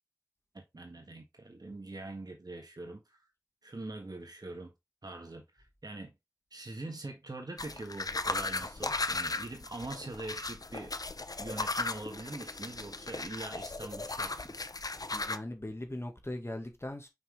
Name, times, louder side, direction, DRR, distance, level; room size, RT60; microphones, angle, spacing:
voice 1, 0.5-3.2 3.6-4.7 5.0-6.1 6.5-10.9 11.4-14.6, right 2 dB, 85° right, 1.6 m, -43 dB
sound 1, 7.6-15.4, left 3 dB, 70° left, 0.6 m, -36 dB
voice 2, 14.8-17.1, left 1 dB, 40° left, 1.9 m, -40 dB
5.9 x 5.6 x 3.2 m
wide cardioid pair, 40°, 7 cm